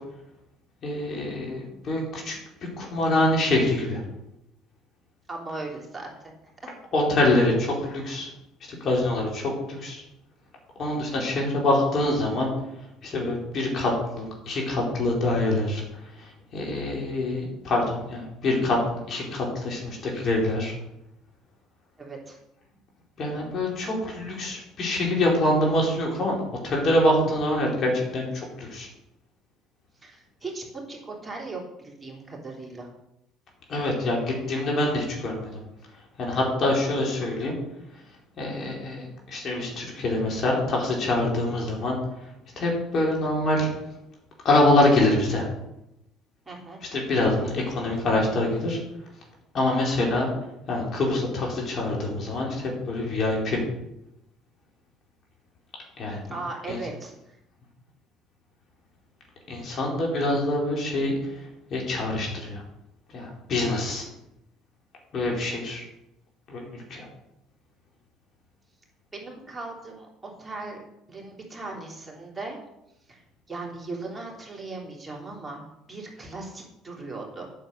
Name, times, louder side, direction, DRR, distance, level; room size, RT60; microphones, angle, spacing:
voice 1, 0.8-2.4 2.8-4.0 6.9-8.3 8.8-10.0 10.8-12.5 13.0-15.8 16.2-16.3 16.5-20.7 23.2-26.4 26.6-28.9 33.7-35.5 36.2-37.6 38.4-42.0 42.6-43.7 44.4-45.5 46.9-48.8 49.5-50.3 50.7-53.6 56.0-56.2 56.7-56.8 59.5-61.1 61.7-62.6 63.1-64.0 65.1-65.8 66.5-67.0, left 1 dB, 50° left, -2 dB, 4.3 m, -25 dB
voice 2, 5.3-6.3 22.0-22.4 30.0-32.9 46.5-46.8 56.3-57.4 69.1-70.8 71.1-72.6 73.1-73.2 73.5-77.5, right 3 dB, 15° right, -2 dB, 3.4 m, -38 dB
9.0 x 6.9 x 6.8 m, 0.87 s
hypercardioid pair, 70°, 0 cm